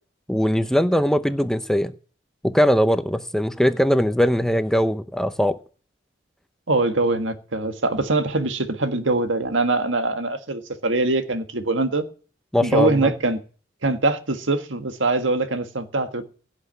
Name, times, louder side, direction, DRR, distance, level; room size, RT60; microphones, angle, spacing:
voice 1, 0.3-1.9 2.4-5.5 12.5-13.1, equal, 5° left, 0.7 m, -20 dB
voice 2, 6.7-12.0 12.6-13.4 13.8-16.2, right 2 dB, 85° right, 1.7 m, -23 dB
17.0 x 6.0 x 9.1 m
head